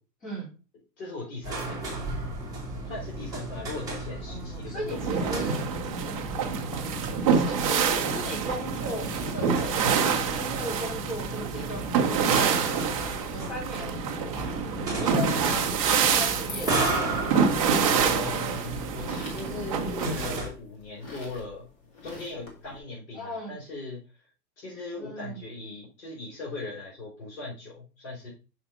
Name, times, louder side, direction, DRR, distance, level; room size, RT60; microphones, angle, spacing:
voice 1, 0.2-0.5 4.3-5.5 7.3-14.5 15.0-16.8 23.1-23.6 25.0-25.4, equal, 15° left, -5 dB, 2.5 m, -38 dB
voice 2, 1.0-2.0 2.9-5.6 15.3-15.4 17.9-21.7 22.0-24.0 24.6-28.3, left 2 dB, 55° left, -4 dB, 3.4 m, -39 dB
sound 1, 1.4-20.5, right 2 dB, 5° right, 1.9 m, -35 dB
sound 2, 4.9-20.4, right 6 dB, 20° right, 0.6 m, -27 dB
sound 3, 15.3-22.8, left 3 dB, 35° left, 2.1 m, -43 dB
6.1 x 4.0 x 4.9 m, 0.33 s
hypercardioid pair, 160°, 49 cm